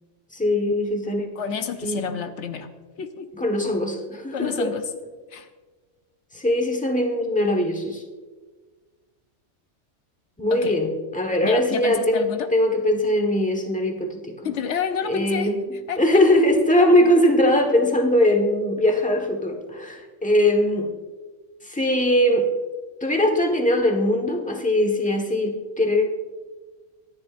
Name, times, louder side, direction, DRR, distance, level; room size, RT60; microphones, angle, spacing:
voice 1, 0.3-1.3 1.8-2.0 3.4-4.7 6.3-8.0 10.4-14.2 15.1-15.6 16.0-20.9 21.7-22.5 23.0-26.0, left 1 dB, 5° left, 3 dB, 1.2 m, -21 dB
voice 2, 1.3-2.7 3.0-3.5 4.3-4.9 5.3-5.5 10.5-10.8 11.4-12.5 14.4-16.2, left 6 dB, 75° left, 8 dB, 1.0 m, -30 dB
24.0 x 10.5 x 2.5 m, 1.4 s
omnidirectional pair, 1.2 m